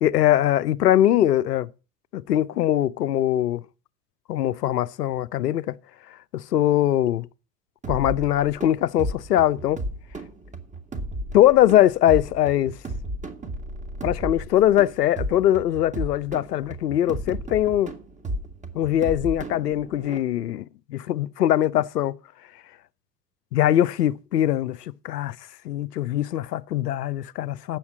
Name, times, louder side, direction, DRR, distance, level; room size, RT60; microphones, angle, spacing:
voice 1, 0.0-1.7 2.1-3.6 4.3-5.8 6.1-7.3 7.9-9.8 11.3-12.7 14.0-17.9 18.7-22.1 23.5-25.4 25.6-27.8, left 12 dB, 80° left, 0.7 m, -22 dB
sound 1, 7.8-20.2, right 1 dB, 15° right, 1.9 m, -34 dB
9.0 x 7.1 x 7.2 m
figure-of-eight pair, 75°, 47 cm